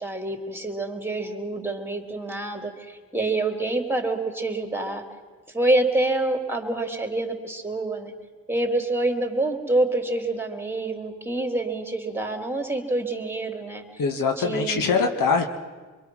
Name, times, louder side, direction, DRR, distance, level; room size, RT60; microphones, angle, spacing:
voice 1, 0.0-5.0 5.5-8.1 8.5-13.8 14.4-14.8 15.4-15.5, right 2 dB, 5° right, 3 dB, 3.6 m, -26 dB
voice 2, 14.0-15.4, left 5 dB, 75° left, 4 dB, 1.8 m, -23 dB
25.0 x 22.5 x 6.3 m, 1.3 s
supercardioid pair, 50°, 34 cm